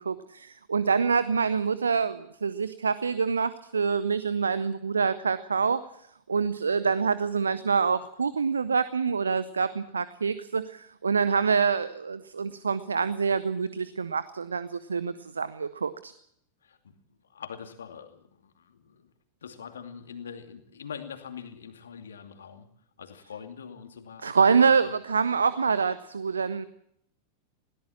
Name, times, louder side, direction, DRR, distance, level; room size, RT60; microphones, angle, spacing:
voice 1, 0.0-5.8 6.3-16.1 24.2-26.6, right 5 dB, 75° right, 15 dB, 0.7 m, -26 dB
voice 2, 16.6-16.9 17.3-19.1 19.4-22.7 23.0-24.7, left 7 dB, 65° left, 6 dB, 2.6 m, -43 dB
21.0 x 18.0 x 7.3 m, 0.73 s
figure-of-eight pair, 90°, 0 cm